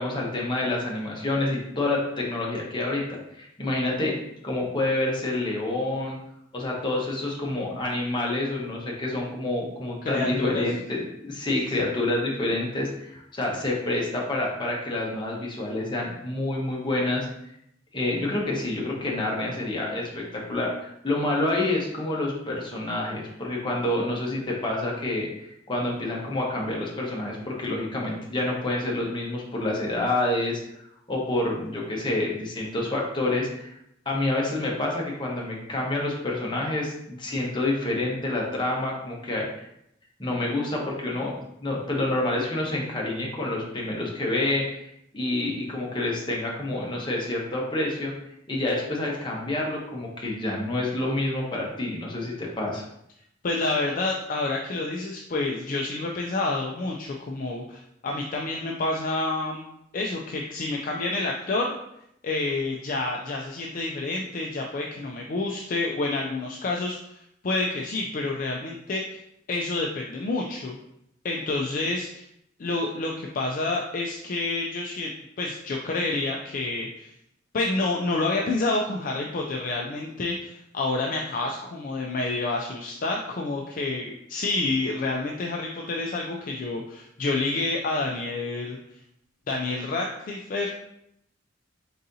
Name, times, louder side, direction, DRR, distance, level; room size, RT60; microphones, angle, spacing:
voice 1, 0.0-3.0 3.3-4.1 4.4-6.2 6.5-17.3 17.9-30.6 31.1-33.7 34.1-39.7 40.2-41.3 41.6-44.9 45.1-48.1 48.5-52.8, left 2 dB, 25° left, -2 dB, 0.9 m, -28 dB
voice 2, 10.0-10.6 53.4-59.6 59.9-61.8 62.2-67.0 67.4-69.2 69.5-70.8 71.2-72.3 72.6-75.1 75.4-77.1 77.5-88.8 89.5-90.8, left 2 dB, 45° left, 0 dB, 0.4 m, -28 dB
4.1 x 3.7 x 2.7 m, 0.78 s
head